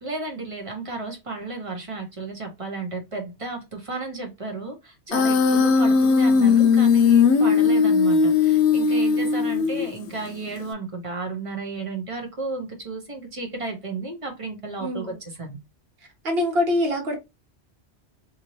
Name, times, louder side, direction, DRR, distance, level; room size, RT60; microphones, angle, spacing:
voice 1, 0.0-15.6, right 3 dB, 35° right, 0.9 m, -33 dB
Human voice, 5.1-10.1, left 5 dB, 80° left, 0.9 m, -18 dB
voice 2, 14.8-15.2 16.2-17.1, left 1 dB, 65° right, 1.2 m, -25 dB
2.7 x 2.6 x 3.0 m
omnidirectional pair, 1.1 m